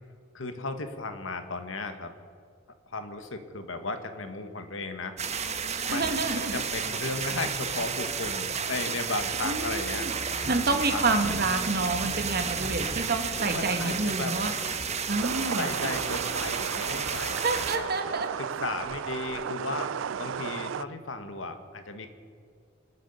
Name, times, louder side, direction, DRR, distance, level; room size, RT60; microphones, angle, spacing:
voice 1, 0.3-2.1 2.9-5.1 5.8-10.1 10.5-11.2 13.5-14.4 15.6-17.9 18.4-19.9 20.2-22.1, left 3 dB, 75° left, 8 dB, 1.5 m, -35 dB
sound 1, 5.2-17.8, right 6 dB, 35° right, 1.1 m, -32 dB
voice 2, 5.9-6.6 9.4-10.1 10.5-14.5 15.1-15.7 17.4-18.3, right 3 dB, 50° right, 7 dB, 1.4 m, -28 dB
sound 2, 9.4-16.5, equal, 60° left, 4.3 m, -50 dB
sound 3, 15.2-20.8, right 8 dB, 70° right, 0.4 m, -34 dB
26.0 x 8.8 x 5.6 m, 2.3 s
head